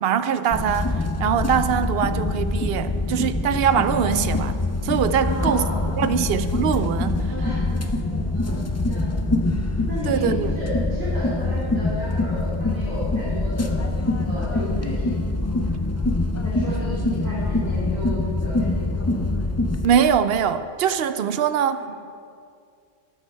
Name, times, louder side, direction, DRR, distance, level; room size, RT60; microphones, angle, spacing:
voice 1, 0.0-4.6 4.8-5.7 6.0-7.3 10.1-10.6 19.8-21.9, right 8 dB, 65° right, 12 dB, 0.7 m, -22 dB
sound 1, 0.5-19.9, left 2 dB, 25° left, 0.3 m, -24 dB
voice 2, 5.2-6.1 7.4-7.5 7.8-7.9 8.3-9.2 9.9-13.8 14.2-15.1 15.4-15.9 16.4-19.2 21.7-21.9, equal, 90° right, -11 dB, 3.8 m, -34 dB
13.0 x 9.2 x 4.5 m, 2.3 s
omnidirectional pair, 1.2 m